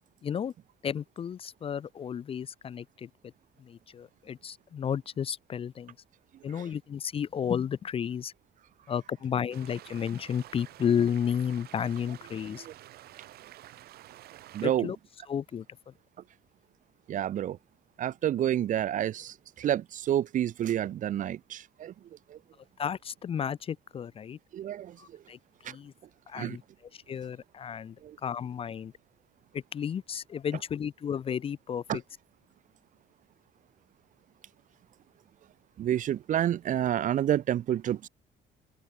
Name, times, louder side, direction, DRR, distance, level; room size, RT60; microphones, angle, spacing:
voice 1, 0.2-0.5 0.8-3.1 3.6-6.0 6.4-8.3 8.9-12.7 14.6-15.0 15.3-15.9 22.8-24.4 25.0-25.9 26.3-26.6 26.9-28.0 28.2-28.9 29.5-32.0, left 8 dB, 35° left, 0.5 m, -32 dB
sound 1, 9.5-14.7, right 14 dB, 70° right, 1.1 m, -50 dB
voice 2, 14.5-14.9 17.1-17.6 18.0-21.9 22.3-22.4 24.5-25.2 25.6-25.8 26.3-26.6 28.0-28.2 31.9-32.0 35.8-38.1, right 11 dB, 50° right, 0.7 m, -29 dB
cardioid pair, 110°, 17 cm